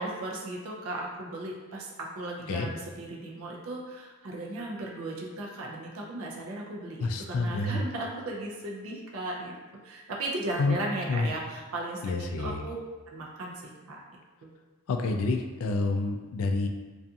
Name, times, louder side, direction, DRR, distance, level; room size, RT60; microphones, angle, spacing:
voice 1, 0.0-9.5 9.8-12.8 13.1-13.6 13.9-14.0, right 2 dB, 65° right, -2 dB, 0.4 m, -36 dB
voice 2, 7.0-7.8 10.6-10.8 11.1-11.3 12.0-12.7 14.9-16.7, left 3 dB, 75° left, 5 dB, 0.3 m, -28 dB
2.4 x 2.3 x 2.6 m, 1.3 s
head